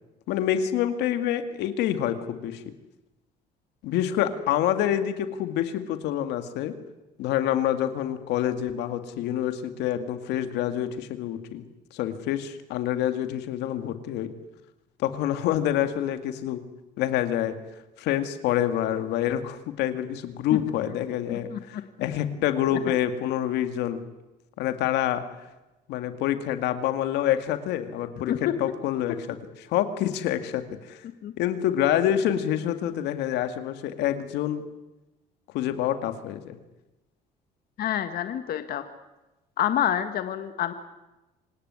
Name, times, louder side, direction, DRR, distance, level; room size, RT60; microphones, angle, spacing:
voice 1, 0.3-2.6 3.8-6.7 7.2-11.6 11.9-14.3 15.0-16.6 17.0-17.6 18.0-24.0 24.6-25.2 25.9-31.0 31.4-34.6 35.5-36.6, left 11 dB, 85° left, 9 dB, 2.1 m, -27 dB
voice 2, 21.3-21.8 28.3-28.5 31.2-31.3 37.8-38.8 39.6-40.7, left 10 dB, 65° left, 9 dB, 1.6 m, -27 dB
26.5 x 17.5 x 9.6 m, 1.0 s
cardioid pair, 110°, 17 cm